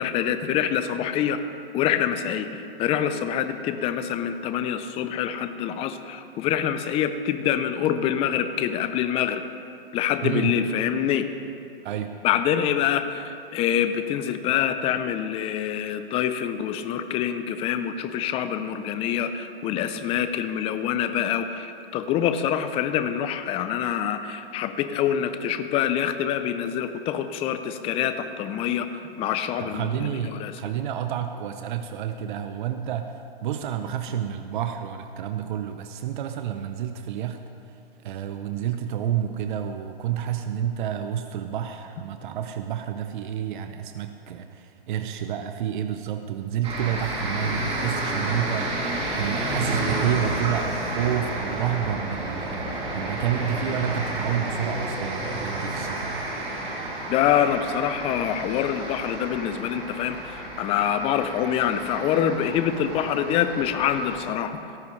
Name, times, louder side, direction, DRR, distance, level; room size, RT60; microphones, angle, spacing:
voice 1, 0.0-1.4 1.7-9.4 9.9-11.3 12.2-28.9 29.2-30.5 57.1-64.6, left 9 dB, 20° left, 10 dB, 0.6 m, -25 dB
voice 2, 10.2-10.6 11.8-12.1 29.6-33.1 33.4-37.4 38.0-56.2, right 10 dB, 50° right, 7 dB, 0.8 m, -29 dB
sound 1, 46.6-64.2, right 1 dB, 20° right, 2.9 m, -31 dB
17.0 x 14.0 x 3.2 m, 2.6 s
hypercardioid pair, 130°, 31 cm